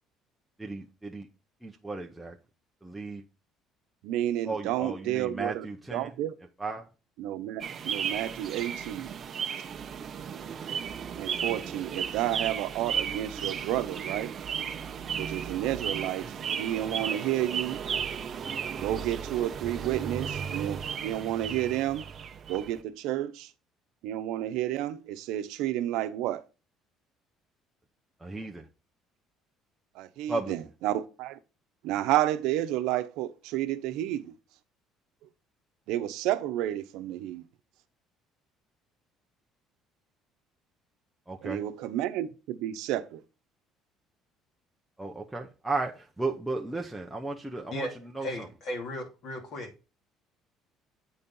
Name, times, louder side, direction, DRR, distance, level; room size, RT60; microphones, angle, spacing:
voice 1, 0.6-1.3 1.6-2.4 2.8-3.2 4.5-6.1 6.6-6.9 28.2-28.7 30.3-30.5 41.3-41.6 45.0-47.9 48.1-48.5, right 3 dB, 5° right, 0.7 m, -34 dB
voice 2, 4.0-5.7 5.9-6.3 7.2-9.2 11.1-14.3 15.2-17.8 18.8-22.0 22.5-23.5 24.0-26.4 29.9-31.4 31.8-34.3 35.9-37.4 41.4-43.2, right 13 dB, 80° right, 0.8 m, -31 dB
sound 1, 7.6-22.8, right 7 dB, 35° right, 0.7 m, -35 dB
voice 3, 48.2-49.7, left 1 dB, 50° left, 2.4 m, -36 dB
8.5 x 4.2 x 5.4 m
cardioid pair, 150°, 0 cm